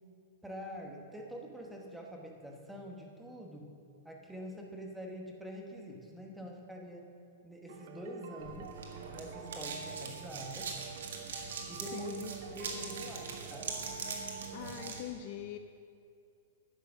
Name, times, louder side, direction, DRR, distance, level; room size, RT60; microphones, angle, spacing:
voice 1, 0.4-3.7 4.0-7.0 7.4-8.8 9.1-10.7 11.7-12.2 12.5-13.7, equal, 5° right, 0 dB, 1.0 m, -45 dB
sound 1, 7.7-15.0, right 6 dB, 50° right, 1.0 m, -47 dB
sound 2, 8.4-15.0, right 5 dB, 90° right, 1.9 m, -42 dB
voice 2, 11.9-12.3 14.5-15.6, left 11 dB, 35° left, 8 dB, 0.4 m, -42 dB
10.5 x 7.5 x 6.1 m, 2.4 s
supercardioid pair, 170°, 0 cm